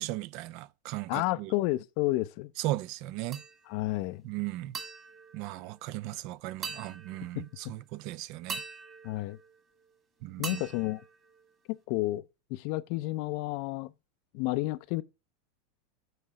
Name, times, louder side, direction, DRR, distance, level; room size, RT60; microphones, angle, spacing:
voice 1, 0.0-1.5 2.6-3.4 4.2-4.8 5.3-8.6 10.2-10.6, right 16 dB, 55° right, 0.5 m, -37 dB
voice 2, 1.1-2.5 3.7-4.2 7.4-7.5 9.0-9.4 10.4-11.0 11.7-13.9 14.3-15.0, left 19 dB, 60° left, 0.5 m, -31 dB
sound 1, 3.3-3.9 4.7-6.2 6.6-7.6 8.5-10.0 10.4-11.8, right 5 dB, 30° right, 1.9 m, -43 dB
9.0 x 3.2 x 4.8 m
supercardioid pair, 125°, 0 cm